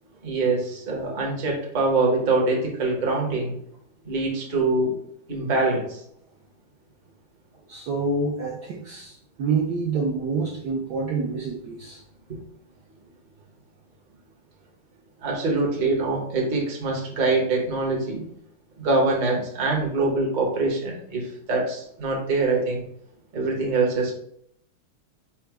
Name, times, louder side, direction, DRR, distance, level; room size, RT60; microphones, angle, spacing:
voice 1, 0.2-3.6 4.0-4.9 5.3-6.0 15.2-18.2 18.8-21.2 21.5-22.9 23.3-24.1, right 3 dB, 40° right, -2 dB, 0.7 m, -24 dB
voice 2, 7.7-12.0, right 4 dB, 70° right, -2 dB, 1.0 m, -27 dB
4.4 x 2.1 x 4.7 m, 0.70 s
omnidirectional pair, 2.3 m